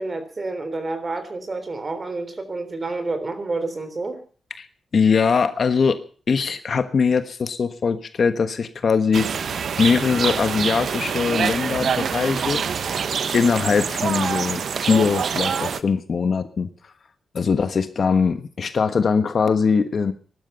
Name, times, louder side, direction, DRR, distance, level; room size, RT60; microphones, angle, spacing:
voice 1, 0.0-4.2, right 3 dB, 25° right, 9 dB, 3.5 m, -29 dB
voice 2, 4.9-6.0 6.3-9.5 9.8-16.7 17.3-20.1, left 5 dB, 45° left, 10 dB, 1.3 m, -21 dB
sound 1, 9.1-15.8, right 6 dB, 55° right, 1.0 m, -25 dB
19.0 x 12.0 x 5.6 m, 0.42 s
wide cardioid pair, 155°, 0 cm